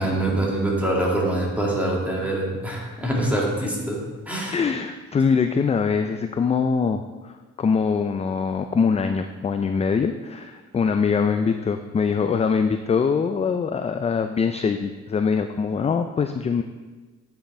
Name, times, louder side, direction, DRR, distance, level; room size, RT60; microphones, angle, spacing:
voice 1, 0.0-4.0 4.3-4.6, right 1 dB, 5° right, -3 dB, 2.3 m, -24 dB
voice 2, 4.5-16.6, left 5 dB, 20° left, 8 dB, 0.3 m, -23 dB
8.8 x 5.7 x 4.3 m, 1.3 s
cardioid pair, 90°, 30 cm